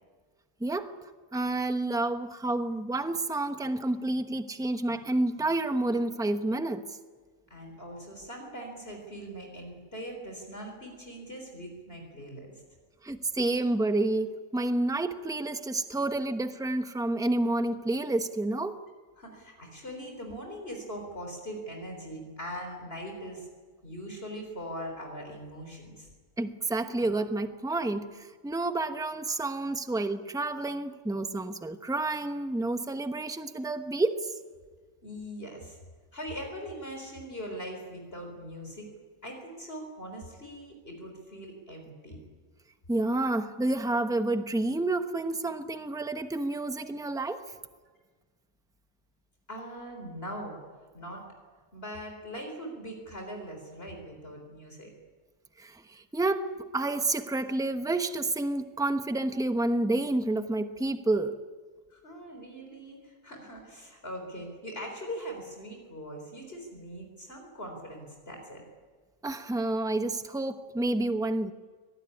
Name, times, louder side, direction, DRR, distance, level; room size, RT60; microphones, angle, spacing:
voice 1, 0.6-1.0 1.3-6.8 13.0-18.8 26.4-34.3 42.9-47.5 55.6-61.4 69.2-71.5, right 2 dB, 5° right, 0.9 m, -29 dB
voice 2, 7.5-12.6 19.2-23.5 23.8-26.1 35.0-35.8 36.1-38.9 39.2-42.2 49.5-50.6 50.9-51.3 51.7-54.9 61.9-68.6, equal, 45° left, 4.2 m, -41 dB
24.0 x 19.0 x 9.8 m
omnidirectional pair, 1.4 m